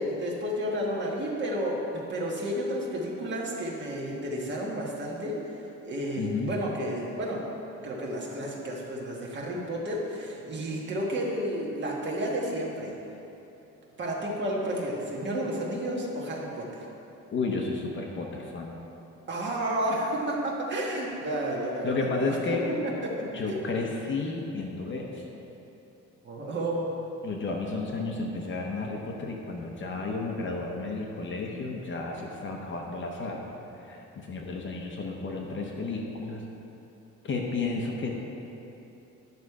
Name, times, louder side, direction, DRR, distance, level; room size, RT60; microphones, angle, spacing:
voice 1, 0.0-7.4 7.8-13.0 14.0-16.8 19.3-22.1 22.7-23.6 26.2-26.9, right 1 dB, 35° right, -3 dB, 1.5 m, -31 dB
voice 2, 6.2-6.5 17.3-18.7 21.8-22.7 23.3-25.2 27.2-36.4 37.2-38.1, left 3 dB, 40° left, 0 dB, 0.9 m, -32 dB
11.0 x 6.4 x 4.8 m, 2.9 s
cardioid pair, 165°, 30 cm